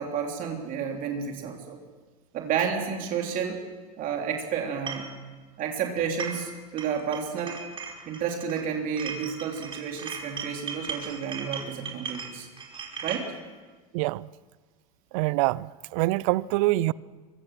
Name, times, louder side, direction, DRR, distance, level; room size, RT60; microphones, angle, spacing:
voice 1, 0.0-1.8 2.3-3.6 4.0-5.1 5.6-7.6 8.1-12.5 13.0-13.3, right 7 dB, 45° right, 3.3 m, -31 dB
sound 1, 4.9-5.1 6.0-6.5 6.8-8.6 9.0-13.3, right 5 dB, 25° right, 4.9 m, -37 dB
voice 2, 13.9-14.3 15.1-16.9, right 19 dB, 60° right, 0.6 m, -25 dB
24.0 x 23.5 x 6.1 m
hypercardioid pair, 95°, 19 cm